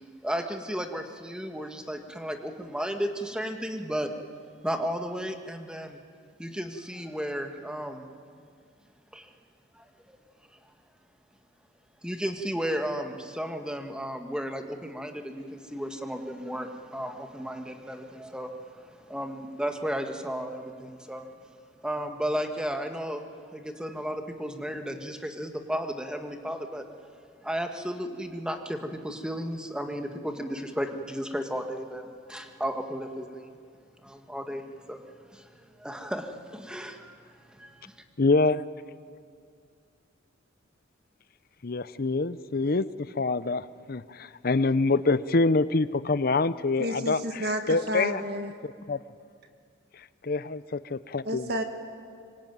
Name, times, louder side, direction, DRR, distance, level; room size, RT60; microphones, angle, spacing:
voice 1, 0.2-4.1 4.6-6.0 6.4-8.1 9.1-9.3 9.7-10.2 12.0-21.3 21.8-26.9 27.4-33.5 34.0-35.5 35.8-37.1 37.5-37.9, equal, 5° right, 5 dB, 1.6 m, -34 dB
voice 2, 38.2-38.6 41.6-48.2 48.6-49.0 50.3-51.5, left 3 dB, 50° left, 15 dB, 0.7 m, -26 dB
voice 3, 46.8-48.5 51.3-51.6, equal, 55° right, 5 dB, 1.9 m, -31 dB
25.5 x 23.5 x 9.3 m, 2.2 s
head